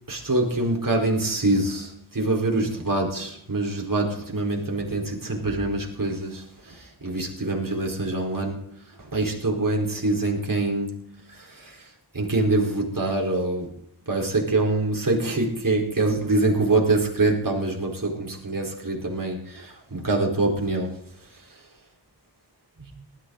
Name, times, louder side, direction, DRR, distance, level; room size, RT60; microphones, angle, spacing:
voice 1, 0.1-11.9 12.1-13.7 14.1-21.0 21.3-21.4, right 2 dB, 50° right, 4.5 m, -25 dB
19.5 x 13.0 x 4.0 m
wide cardioid pair, 60°, 41 cm